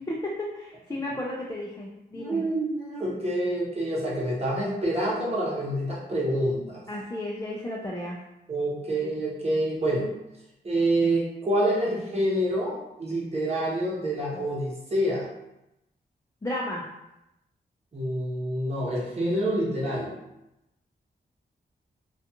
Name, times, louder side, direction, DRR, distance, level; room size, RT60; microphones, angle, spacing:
voice 1, 0.1-2.4 6.9-8.2 16.4-16.8, left 1 dB, 20° left, -4 dB, 0.4 m, -33 dB
voice 2, 2.1-6.8 8.5-10.1 10.6-15.3 17.9-20.1, right 1 dB, 35° right, -6 dB, 0.9 m, -27 dB
2.4 x 2.3 x 2.8 m, 0.90 s
wide cardioid pair, 90°, 18 cm